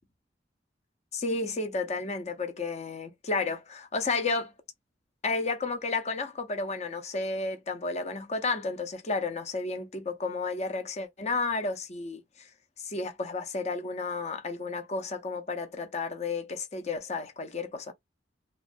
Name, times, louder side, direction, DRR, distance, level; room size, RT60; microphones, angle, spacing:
voice 1, 1.1-4.5 5.2-12.5 12.8-17.9, left 3 dB, 40° left, 0.6 m, -32 dB
3.0 x 2.3 x 2.5 m
head